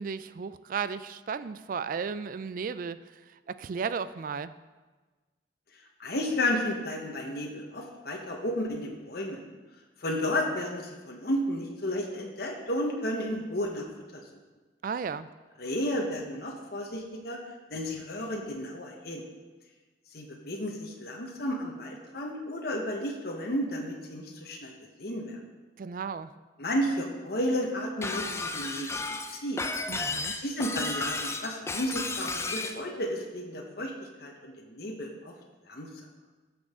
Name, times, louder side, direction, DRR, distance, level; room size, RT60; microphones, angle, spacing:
voice 1, 0.0-3.0 3.3-4.5 14.8-15.3 25.8-26.3 29.9-30.4, right 6 dB, 50° right, 14 dB, 0.3 m, -34 dB
voice 2, 6.0-9.4 10.0-13.8 14.1-14.2 15.6-17.4 17.7-19.2 20.1-24.7 25.0-25.4 26.6-29.0 29.3-29.6 30.4-33.9 34.2-35.3 35.7-35.9, left 1 dB, 60° left, 0 dB, 1.1 m, -32 dB
Shatter, 28.0-32.8, left 3 dB, 15° left, 0.5 m, -33 dB
13.5 x 6.2 x 3.7 m, 1.3 s
head